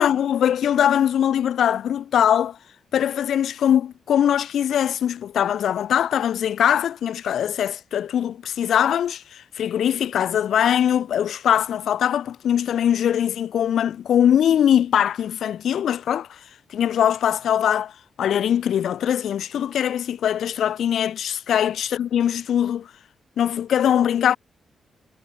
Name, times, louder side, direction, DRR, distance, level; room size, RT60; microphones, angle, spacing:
voice 1, 0.0-2.6 2.9-16.3 16.7-17.9 18.2-22.9 23.4-24.4, left 9 dB, 75° left, 1.3 m, -21 dB
supercardioid pair, 50°, 0 cm